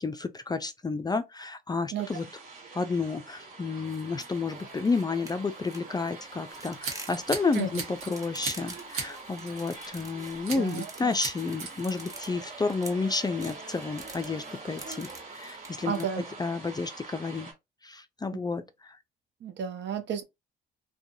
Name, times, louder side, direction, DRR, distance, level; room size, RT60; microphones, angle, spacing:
voice 1, 0.0-2.3 2.7-17.5 17.8-19.0, left 4 dB, 20° left, 0.4 m, -31 dB
sound 1, 2.0-17.5, right 3 dB, 45° right, 1.4 m, -45 dB
sound 2, 3.9-16.1, right 2 dB, 15° right, 1.1 m, -47 dB
Scissors, 6.5-8.1 8.4-9.1 9.5-9.7 10.4-10.9 11.2-11.7, right 5 dB, 80° right, 1.1 m, -36 dB
voice 2, 10.5-11.1 15.9-16.2 19.4-20.2, right 8 dB, 60° right, 0.7 m, -32 dB
2.5 x 2.3 x 2.6 m
supercardioid pair, 60°, 21 cm